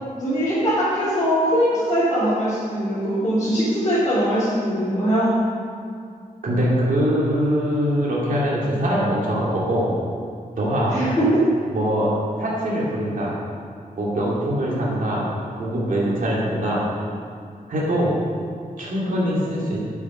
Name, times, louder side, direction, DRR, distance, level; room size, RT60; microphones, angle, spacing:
voice 1, 0.2-5.4 10.9-11.4, equal, 25° left, -11 dB, 2.5 m, -21 dB
voice 2, 6.4-9.9 10.6-11.0 11.7-12.1 12.4-13.3 14.0-15.2 15.6-16.8 17.7-18.1 18.8-19.8, equal, 65° right, -6 dB, 2.6 m, -22 dB
9.5 x 7.3 x 6.1 m, 2.3 s
wide cardioid pair, 180°, 15 cm